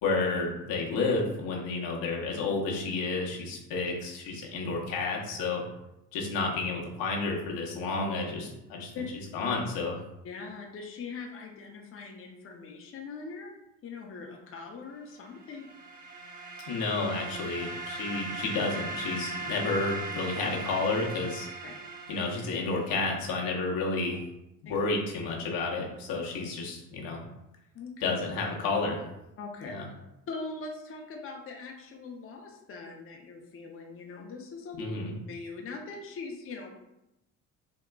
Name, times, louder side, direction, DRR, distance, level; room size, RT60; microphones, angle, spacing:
voice 1, 0.0-5.6 6.1-8.9 9.3-10.0 16.7-21.5 22.1-24.2 24.6-27.2 28.0-29.0 29.6-29.8 34.8-35.1, left 3 dB, 85° left, -1 dB, 0.8 m, -31 dB
voice 2, 10.2-13.5 13.8-15.7 21.6-21.8 24.7-24.8 27.7-28.1 29.4-29.7 30.3-34.8 35.3-36.8, left 4 dB, 40° left, 1 dB, 0.6 m, -41 dB
sound 1, 15.3-23.1, right 3 dB, 55° right, 0.8 m, -39 dB
3.5 x 2.9 x 2.2 m, 0.88 s
cardioid pair, 90°, 34 cm